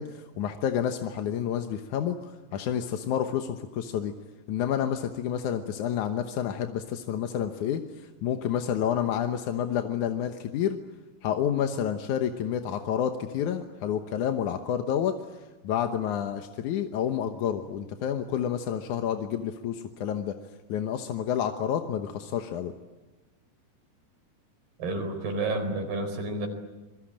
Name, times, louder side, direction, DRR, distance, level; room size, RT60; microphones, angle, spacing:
voice 1, 0.0-4.1 4.5-10.8 11.2-15.2 15.6-20.4 20.7-22.7, left 9 dB, 65° left, 6 dB, 2.2 m, -29 dB
voice 2, 24.8-26.5, right 2 dB, 75° right, 6 dB, 6.3 m, -30 dB
27.5 x 22.5 x 8.8 m, 1.1 s
omnidirectional pair, 4.5 m